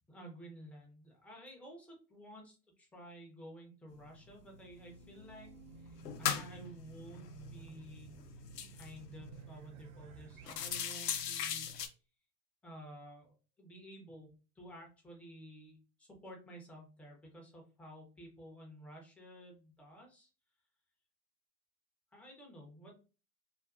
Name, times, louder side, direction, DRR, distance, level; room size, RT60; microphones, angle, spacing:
voice 1, 0.1-5.5 5.8-8.2 8.7-11.7 12.6-20.3 22.1-23.0, right 1 dB, 5° left, 0 dB, 0.4 m, -53 dB
sound 1, 4.0-4.2 4.5-5.3 5.8-9.5 9.8-10.0 10.3-11.9, left 8 dB, 85° left, 0.6 m, -40 dB
Race car auto racing / Alarm, 4.3-10.6, right 7 dB, 60° right, 0.6 m, -55 dB
2.4 x 2.4 x 2.3 m, 0.34 s
hypercardioid pair, 95°, 47 cm